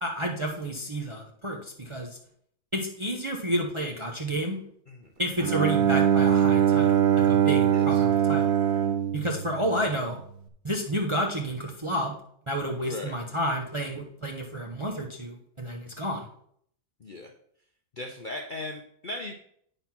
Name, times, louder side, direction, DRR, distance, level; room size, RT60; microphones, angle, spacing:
voice 1, 0.0-2.1 2.7-4.6 5.2-8.5 9.1-10.2 10.6-12.2 12.5-16.3, equal, 25° right, 1 dB, 0.7 m, -30 dB
Bowed string instrument, 5.4-10.2, right 9 dB, 75° right, 1.3 m, -22 dB
voice 2, 7.7-8.1 12.8-13.2 13.8-13.9 17.0-17.3 18.0-19.3, left 2 dB, 45° left, 2 dB, 0.6 m, -38 dB
9.0 x 4.0 x 5.8 m, 0.65 s
omnidirectional pair, 1.7 m